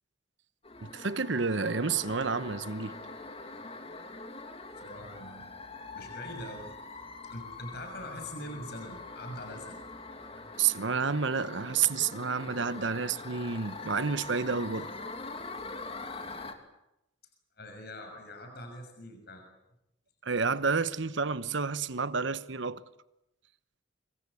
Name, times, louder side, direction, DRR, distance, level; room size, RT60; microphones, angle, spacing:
sound 1, 0.6-16.5, left 3 dB, 30° left, 2.8 m, -43 dB
voice 1, 0.8-2.9 10.6-14.9 20.2-22.8, right 5 dB, 70° right, 1.0 m, -30 dB
voice 2, 4.8-5.5 5.9-6.7 7.2-9.8 10.3-10.4 17.6-19.4, left 1 dB, 55° left, 6.5 m, -43 dB
26.0 x 24.0 x 8.4 m
head